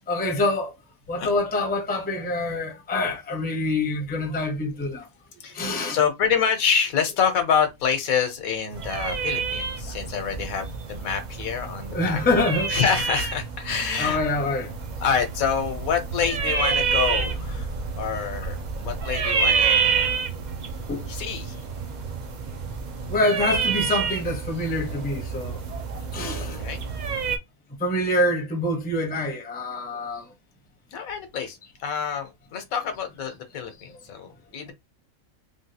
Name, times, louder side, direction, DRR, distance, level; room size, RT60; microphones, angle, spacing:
voice 1, 0.1-0.7 1.1-5.0 5.5-6.0 11.9-12.8 14.0-14.7 19.2-19.3 20.9-21.0 23.1-25.6 26.1-26.6 27.8-30.2, left 2 dB, 10° left, 0.5 m, -25 dB
voice 2, 5.4-12.2 12.7-14.2 15.0-17.7 18.0-20.2 21.1-21.5 26.4-26.8 30.9-34.7, left 7 dB, 75° left, 1.2 m, -27 dB
sound 1, 8.7-27.4, right 5 dB, 80° right, 0.4 m, -28 dB
3.5 x 2.3 x 2.7 m
omnidirectional pair, 1.5 m